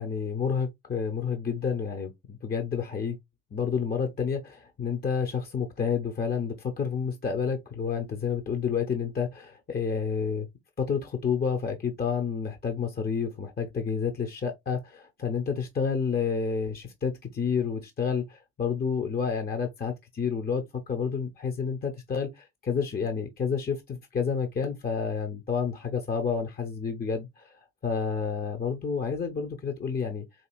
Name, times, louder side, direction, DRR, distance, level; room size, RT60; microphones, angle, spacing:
voice 1, 0.0-3.2 3.5-10.5 10.8-30.2, left 6 dB, 25° left, 0.7 m, -30 dB
4.2 x 2.7 x 2.3 m
hypercardioid pair, 55°, 41 cm